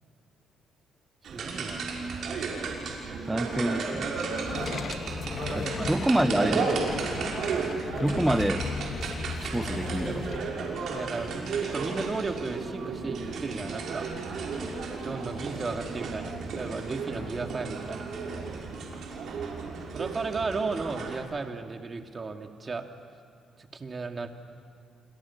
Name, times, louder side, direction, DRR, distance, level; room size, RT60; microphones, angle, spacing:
sound 1, 1.2-21.2, right 4 dB, 70° right, 5.9 m, -33 dB
voice 1, 1.3-1.8 5.1-5.9 10.9-14.0 15.0-18.1 19.6-22.9 23.6-24.3, right 4 dB, 35° right, 4 dB, 2.6 m, -35 dB
voice 2, 3.3-4.1 5.6-6.7 8.0-8.7 9.4-10.3, right 1 dB, 10° right, 12 dB, 1.0 m, -27 dB
sound 2, 4.3-10.4, left 6 dB, 55° left, 1.5 m, -36 dB
29.5 x 26.5 x 7.4 m, 2.3 s
cardioid pair, 90°, 0 cm